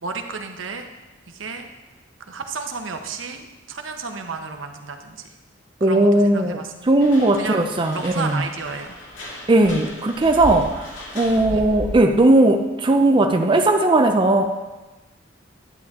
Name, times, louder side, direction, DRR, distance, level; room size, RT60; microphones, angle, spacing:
voice 1, 0.0-0.9 1.3-1.7 2.3-5.3 5.8-6.7 7.4-9.0 11.5-11.7, right 4 dB, 80° right, 5 dB, 0.9 m, -32 dB
voice 2, 5.8-8.4 9.5-14.4, right 2 dB, 25° right, 4 dB, 0.5 m, -18 dB
sound 1, 7.0-12.2, left 1 dB, 70° left, 2.3 m, -35 dB
11.0 x 8.6 x 3.6 m, 1.1 s
head